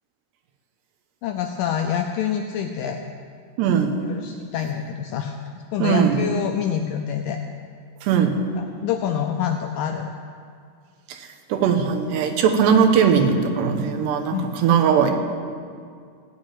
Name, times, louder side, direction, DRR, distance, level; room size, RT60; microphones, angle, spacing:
voice 1, 1.2-3.1 4.0-5.4 5.7-7.4 8.6-10.1 14.3-14.6, left 8 dB, 80° left, 5 dB, 2.0 m, -26 dB
voice 2, 3.6-4.1 5.8-6.2 8.0-8.3 11.1-15.1, right 7 dB, 90° right, 5 dB, 3.4 m, -19 dB
17.0 x 7.5 x 9.0 m, 2.1 s
omnidirectional pair, 4.7 m